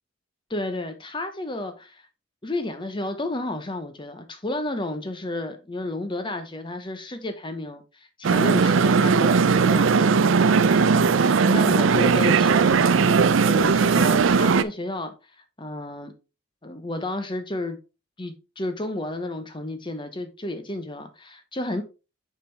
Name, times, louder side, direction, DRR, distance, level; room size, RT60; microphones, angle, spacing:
voice 1, 0.5-2.0 2.4-15.2 15.6-16.1 16.6-17.8 18.2-21.8, left 2 dB, 25° left, 0.8 m, -32 dB
sound 1, 8.2-14.6, right 5 dB, 70° right, 0.5 m, -18 dB
7.3 x 5.5 x 3.3 m
head